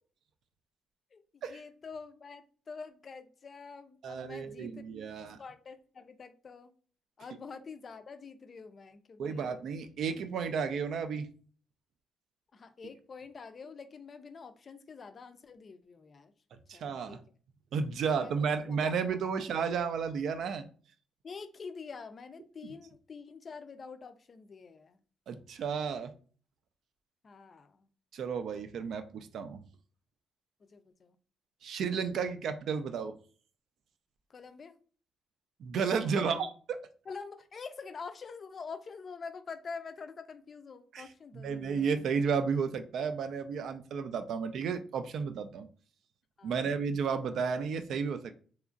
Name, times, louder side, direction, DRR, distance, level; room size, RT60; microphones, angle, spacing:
voice 1, 1.1-4.8 5.2-6.7 7.2-9.6 12.5-16.3 16.7-17.2 18.0-18.8 21.2-25.0 27.2-27.9 30.7-31.2 34.3-34.7 36.2-36.5 37.1-41.9 46.4-46.8, left 5 dB, 40° left, 10 dB, 0.3 m, -46 dB
voice 2, 4.0-5.4 9.2-11.3 16.7-17.2 17.7-20.7 25.3-26.1 28.1-29.6 31.6-33.1 35.6-36.5 40.9-41.1 41.3-45.7 46.4-48.3, right 6 dB, 70° right, 9 dB, 0.3 m, -32 dB
2.9 x 2.4 x 2.4 m, 0.42 s
cardioid pair, 90°, 0 cm